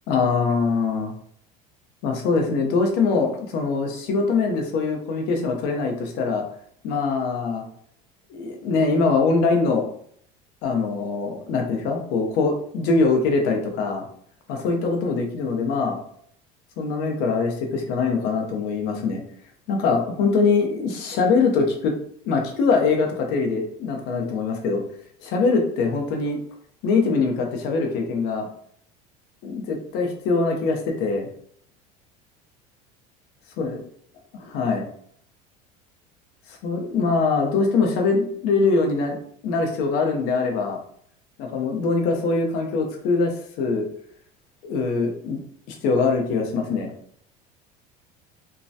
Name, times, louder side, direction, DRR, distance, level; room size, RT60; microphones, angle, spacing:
voice 1, 0.1-1.1 2.0-6.4 6.8-7.6 8.3-9.8 10.6-14.0 14.5-16.0 16.8-19.2 19.7-21.9 22.2-24.8 25.2-26.4 26.8-28.5 29.4-31.3 33.6-33.8 34.5-34.8 36.5-39.2 39.4-40.8 41.4-43.9 44.6-45.4 45.7-46.9, left 4 dB, 65° left, 3 dB, 0.7 m, -23 dB
3.1 x 2.2 x 2.7 m, 0.63 s
supercardioid pair, 120°, 19 cm